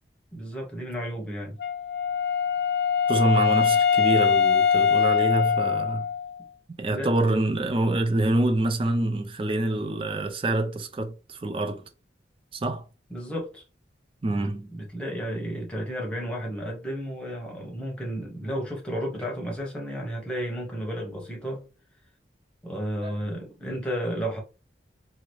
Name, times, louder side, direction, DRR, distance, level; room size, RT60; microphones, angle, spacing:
voice 1, 0.3-1.6 6.9-7.1 13.1-13.6 14.2-21.7 22.6-24.4, equal, 5° left, 0.9 m, -33 dB
Wind instrument woodwind instrument, 1.6-6.4, left 7 dB, 60° left, 0.3 m, -22 dB
voice 2, 3.1-6.1 6.8-11.8 12.5-12.8 14.2-14.7 23.0-23.1, right 2 dB, 30° right, 0.4 m, -26 dB
2.8 x 2.4 x 3.1 m
head